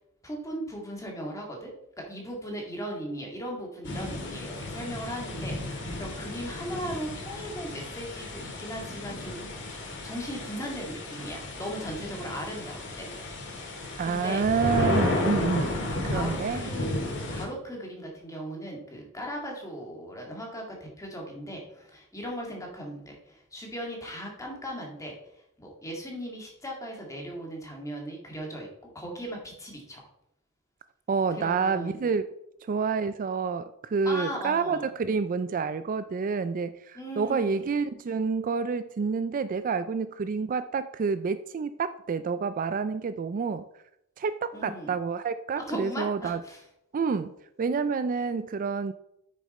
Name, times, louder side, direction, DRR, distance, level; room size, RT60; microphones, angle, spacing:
voice 1, 0.2-1.7 2.1-9.8 10.0-13.1 14.0-14.4 15.7-25.1 25.6-28.7 28.9-30.0 31.3-32.0 34.0-34.9 36.9-37.7 44.5-45.0 45.6-46.6, equal, 15° left, 0 dB, 1.9 m, -38 dB
sound 1, 3.8-17.5, left 2 dB, 60° left, 1.9 m, -33 dB
voice 2, 14.0-15.7 16.0-16.7 31.1-32.3 32.7-43.6 44.2-46.4 46.9-47.3 47.6-48.9, right 5 dB, 40° right, 12 dB, 0.3 m, -28 dB
8.5 x 6.5 x 4.2 m, 0.79 s
head